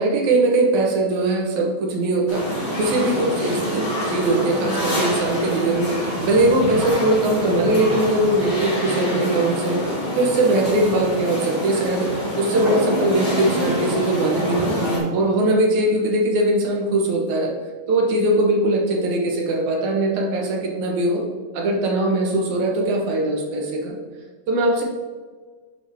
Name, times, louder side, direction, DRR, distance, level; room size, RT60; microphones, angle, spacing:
voice 1, 0.0-2.5 2.8-9.8 10.2-14.8 15.1-17.5 17.9-21.2 21.5-23.9 24.5-24.8, right 2 dB, 75° right, 0 dB, 2.6 m, -21 dB
sound 1, 2.3-15.0, equal, 30° left, 2.9 m, -25 dB
8.9 x 5.9 x 3.6 m, 1.4 s
omnidirectional pair, 3.4 m